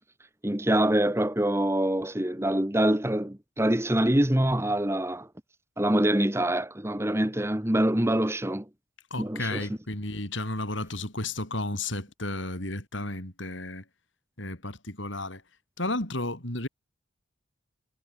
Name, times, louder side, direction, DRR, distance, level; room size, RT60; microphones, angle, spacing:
voice 1, 0.4-5.3 5.8-8.6 9.2-9.7, right 1 dB, 15° right, 1.2 m, -25 dB
voice 2, 9.1-13.8 14.4-15.4 15.8-16.7, left 2 dB, 65° left, 5.7 m, -33 dB
head